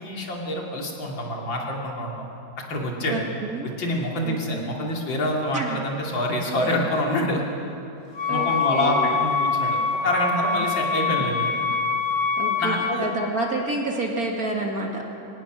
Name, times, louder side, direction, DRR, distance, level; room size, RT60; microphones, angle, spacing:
voice 1, 0.0-2.3 2.7-3.3 3.6-7.4 8.3-11.5 12.6-13.1, left 1 dB, 75° left, -1 dB, 3.3 m, -26 dB
voice 2, 3.1-3.7 4.2-4.7 5.5-5.9 6.7-6.8 8.3-9.1 12.4-12.7 13.0-15.0, right 2 dB, 50° right, 0 dB, 2.5 m, -29 dB
Wind instrument woodwind instrument, 8.1-13.1, left 5 dB, 25° left, 1.4 m, -25 dB
24.5 x 18.5 x 6.2 m, 2.9 s
omnidirectional pair, 2.1 m